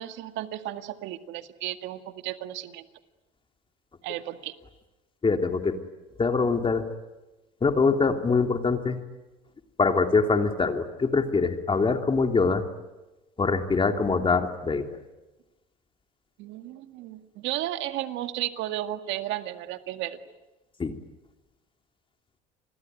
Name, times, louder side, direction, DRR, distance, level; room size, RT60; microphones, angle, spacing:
voice 1, 0.0-2.9 4.0-4.5 16.4-20.2, right 14 dB, 70° right, 8 dB, 2.0 m, -34 dB
voice 2, 5.2-5.8 6.2-6.9 7.6-9.0 9.8-12.6 13.4-15.0 20.8-20.9, left 4 dB, 25° left, 5 dB, 3.0 m, -24 dB
29.0 x 21.5 x 9.4 m, 1.1 s
supercardioid pair, 85°, 20 cm